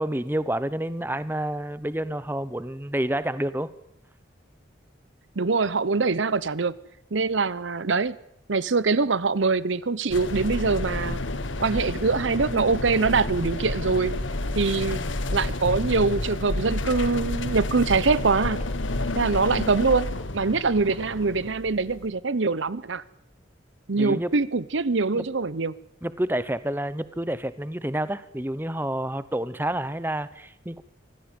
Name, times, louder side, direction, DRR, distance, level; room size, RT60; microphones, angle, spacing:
voice 1, 0.0-3.7 24.0-24.3 25.1-25.2 26.0-30.8, right 1 dB, 10° right, 0.9 m, -29 dB
voice 2, 5.4-6.7 7.1-8.2 8.5-11.2 11.6-14.1 14.5-15.0 15.3-18.6 19.2-23.0 23.9-25.7, right 4 dB, 75° right, 0.8 m, -24 dB
sound 1, 10.1-22.1, left 2 dB, 85° left, 1.6 m, -30 dB
25.5 x 16.5 x 9.2 m
head